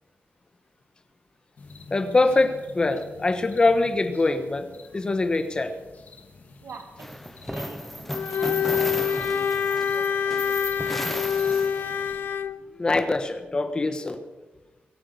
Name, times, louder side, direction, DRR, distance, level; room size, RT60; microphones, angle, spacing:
sound 1, 1.6-12.2, left 3 dB, 45° left, 2.0 m, -49 dB
voice 1, 1.9-5.7 12.7-14.2, left 2 dB, 25° left, 9 dB, 1.3 m, -23 dB
voice 2, 6.6-11.3, right 5 dB, 70° right, 5 dB, 2.1 m, -45 dB
sound 2, 7.0-12.2, equal, 5° left, 0.5 m, -34 dB
Bowed string instrument, 8.1-12.6, left 7 dB, 65° left, 0.5 m, -26 dB
22.5 x 8.8 x 6.9 m, 1.2 s
wide cardioid pair, 170°, 4 cm